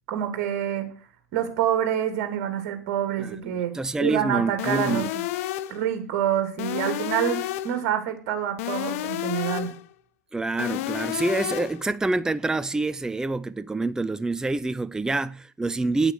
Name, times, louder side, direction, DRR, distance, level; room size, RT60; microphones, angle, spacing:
voice 1, 0.1-0.9 1.3-3.7 4.0-5.1 5.7-7.4 7.6-9.7, right 10 dB, 55° right, 2.9 m, -26 dB
voice 2, 3.2-5.1 10.3-16.1, right 3 dB, 5° right, 0.5 m, -27 dB
sound 1, 4.6-5.9 6.6-7.9 8.6-9.9 10.6-11.9, left 15 dB, 60° left, 0.7 m, -30 dB
9.0 x 8.8 x 6.3 m
figure-of-eight pair, 80°, 9 cm